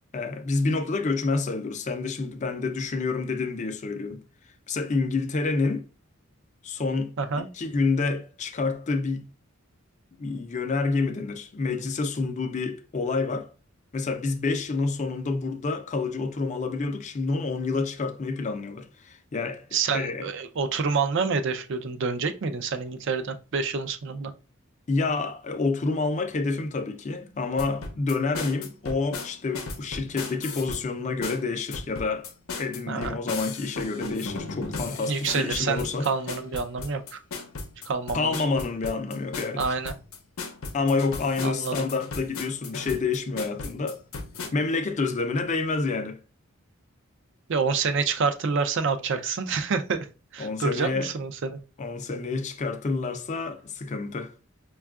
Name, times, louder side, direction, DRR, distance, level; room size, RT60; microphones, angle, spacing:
voice 1, 0.1-4.2 4.7-5.8 6.6-9.2 10.2-13.5 13.9-19.7 19.9-20.3 24.9-32.3 32.6-36.1 38.1-39.6 40.7-44.0 44.5-46.2 50.4-51.1 51.8-54.3, left 3 dB, 35° left, 0.4 m, -28 dB
voice 2, 7.2-7.5 19.7-24.3 32.9-33.2 35.1-37.2 37.9-38.4 39.6-39.9 41.4-41.7 47.5-50.1 50.3-51.6, right 5 dB, 60° right, 0.4 m, -27 dB
sound 1, 27.6-30.8 31.2-44.5, left 4 dB, 85° left, 0.6 m, -36 dB
5.2 x 2.3 x 2.3 m
head